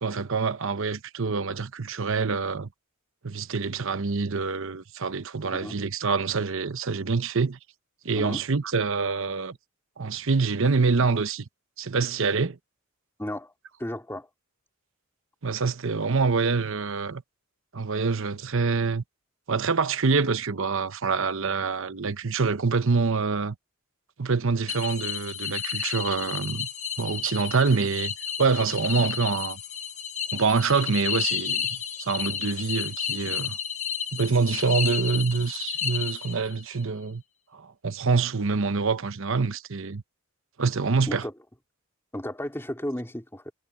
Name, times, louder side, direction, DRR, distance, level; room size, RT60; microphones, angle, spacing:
voice 1, 0.0-2.7 3.2-7.6 8.0-9.6 10.0-11.4 11.8-12.6 15.4-17.2 17.7-19.0 19.5-23.5 24.2-26.7 27.0-28.1 28.4-29.6 30.3-33.6 34.1-37.2 37.5-40.0 40.6-41.2, right 4 dB, 60° right, 0.9 m, -26 dB
voice 2, 8.1-8.4 13.2-13.5 13.8-14.3 41.1-41.3 42.1-43.5, left 1 dB, 10° left, 3.1 m, -33 dB
sound 1, 24.7-36.6, left 8 dB, 35° left, 1.1 m, -32 dB
head